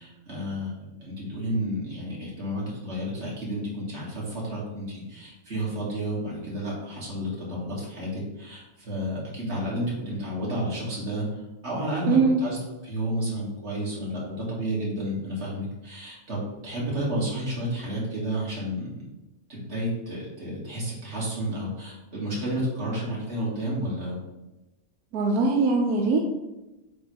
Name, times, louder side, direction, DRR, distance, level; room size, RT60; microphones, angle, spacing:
voice 1, 0.0-12.6 12.8-18.9 19.5-24.2, equal, 50° right, -5 dB, 2.4 m, -31 dB
voice 2, 12.1-12.4 25.1-26.2, right 4 dB, 90° right, 1 dB, 1.2 m, -21 dB
7.8 x 4.4 x 3.3 m, 1.0 s
omnidirectional pair, 1.5 m